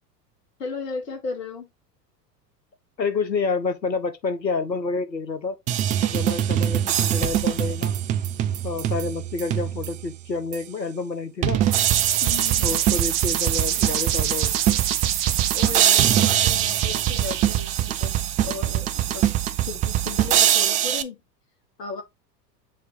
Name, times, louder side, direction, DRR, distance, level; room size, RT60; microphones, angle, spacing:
voice 1, 0.6-1.7 12.2-12.8 15.5-21.2 21.8-22.0, left 5 dB, 70° left, 2.3 m, -35 dB
voice 2, 3.0-5.6 6.1-7.9 8.6-11.6 12.6-14.6, left 4 dB, 90° left, 1.2 m, -28 dB
sound 1, 5.7-10.1 10.5-10.6 11.4-21.0, right 11 dB, 20° right, 0.3 m, -23 dB
sound 2, 11.7-18.4, right 11 dB, 40° right, 1.1 m, -26 dB
7.3 x 3.0 x 4.7 m
figure-of-eight pair, 85°, 49 cm